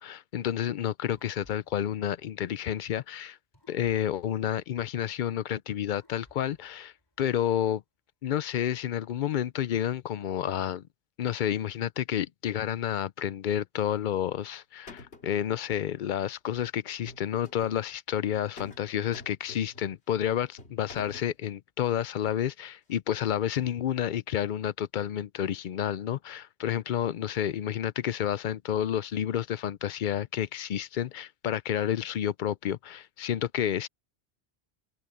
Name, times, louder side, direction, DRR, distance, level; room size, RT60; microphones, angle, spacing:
voice 1, 0.0-3.4 3.7-7.8 8.2-10.8 11.2-33.9, left 10 dB, 60° left, 0.6 m, -30 dB
sound 1, 1.1-3.0 3.5-5.4 5.9-7.6, left 1 dB, 20° left, 4.8 m, -63 dB
sound 2, 14.2-14.6 14.9-15.4 16.9-17.8 18.6-18.9 19.1-19.9 20.6-21.3, left 2 dB, 90° left, 2.7 m, -47 dB
omnidirectional pair, 1.1 m